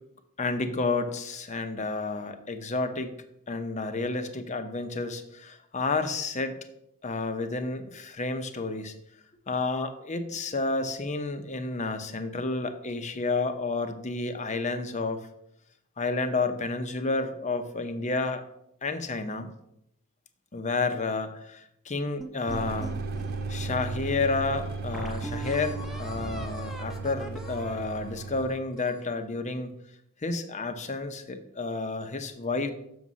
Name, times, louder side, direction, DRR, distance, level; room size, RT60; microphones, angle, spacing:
voice 1, 0.4-3.1 3.5-6.5 7.0-8.9 9.5-15.3 16.0-18.4 18.8-19.5 20.5-23.0 23.5-29.8 30.2-32.7, left 3 dB, 30° left, 8 dB, 0.7 m, -30 dB
sound 1, 22.2-23.8 24.3-24.4 24.9-29.1, right 2 dB, ahead, 0.7 m, -41 dB
sound 2, 22.5-28.5, right 4 dB, 45° right, 0.5 m, -35 dB
6.7 x 5.5 x 6.2 m, 0.77 s
head